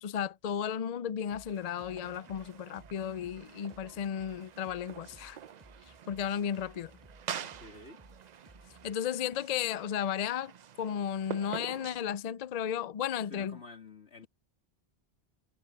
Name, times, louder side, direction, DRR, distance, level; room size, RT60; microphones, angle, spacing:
voice 1, 0.0-5.4 6.1-6.9 8.8-10.5 10.8-13.6, left 9 dB, 50° left, 0.5 m, -34 dB
sound 1, 1.3-8.9, right 1 dB, 20° right, 3.8 m, -59 dB
sound 2, 1.4-12.0, right 9 dB, 50° right, 0.6 m, -46 dB
voice 2, 7.4-8.0 13.3-14.3, left 3 dB, 80° left, 3.3 m, -50 dB
omnidirectional pair, 1.1 m